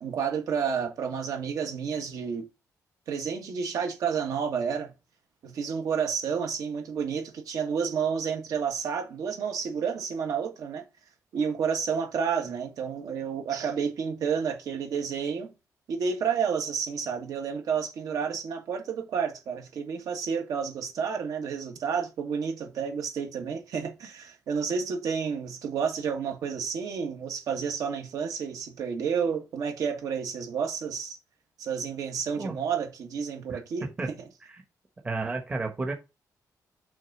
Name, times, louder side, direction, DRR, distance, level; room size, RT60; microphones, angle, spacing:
voice 1, 0.0-2.5 3.1-4.9 5.4-10.8 11.3-15.5 15.9-31.2 31.6-34.2, right 6 dB, 65° right, 1.7 m, -30 dB
voice 2, 35.0-35.9, right 3 dB, 20° right, 1.0 m, -31 dB
6.3 x 3.9 x 6.0 m
wide cardioid pair, 170°, 6 cm